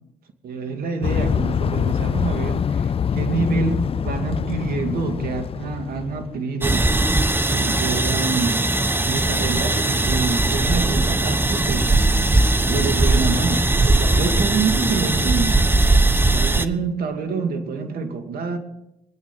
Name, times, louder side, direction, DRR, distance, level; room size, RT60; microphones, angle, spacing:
voice 1, 0.4-6.9 7.5-8.7 9.0-11.9 12.7-15.7 16.3-18.6, right 5 dB, 65° right, 6 dB, 2.5 m, -26 dB
sound 1, 1.0-6.4, left 7 dB, 35° left, 0.5 m, -24 dB
sound 2, 6.6-16.6, right 2 dB, 15° right, 1.1 m, -19 dB
24.0 x 9.3 x 6.0 m, 0.89 s
supercardioid pair, 60°, 16 cm